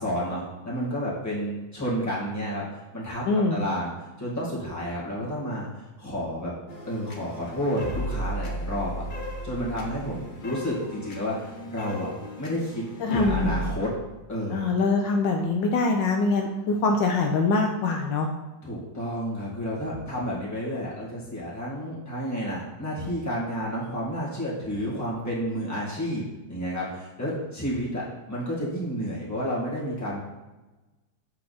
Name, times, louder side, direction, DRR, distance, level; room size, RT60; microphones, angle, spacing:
voice 1, 0.0-2.6 2.9-3.3 3.5-3.9 4.2-5.7 6.0-6.5 6.8-8.9 9.4-12.1 12.4-12.8 13.1-13.9 14.3-14.6 18.6-26.2 26.5-30.2, equal, 10° left, -7 dB, 2.0 m, -30 dB
voice 2, 3.2-3.6 13.0-13.6 14.5-18.3, left 3 dB, 75° left, 2 dB, 1.3 m, -23 dB
sound 1, 6.7-13.7, equal, 55° left, 0.5 m, -35 dB
7.6 x 4.7 x 4.1 m, 1.1 s
omnidirectional pair, 2.1 m